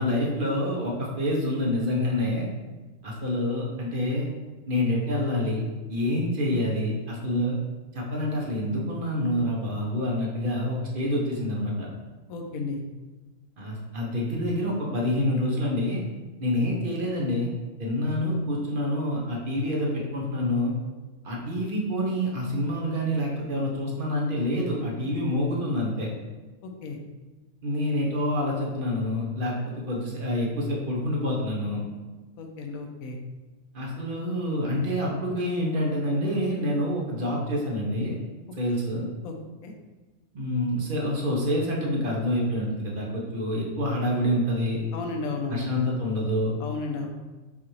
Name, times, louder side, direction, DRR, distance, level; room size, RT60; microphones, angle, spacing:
voice 1, 0.0-2.5 3.0-4.3 4.7-5.6 5.9-7.6 7.9-11.9 13.6-16.0 16.4-17.5 17.8-20.7 21.2-26.1 27.6-31.9 33.7-38.1 38.6-39.0 40.3-44.8 45.5-46.5, left 1 dB, 45° right, -3 dB, 0.8 m, -27 dB
voice 2, 12.3-12.8 26.6-27.0 32.4-33.2 39.2-39.3 39.6-39.7 44.9-45.7 46.6-47.1, left 3 dB, 75° left, 3 dB, 1.0 m, -33 dB
5.5 x 2.5 x 3.1 m, 1.2 s
omnidirectional pair, 1.5 m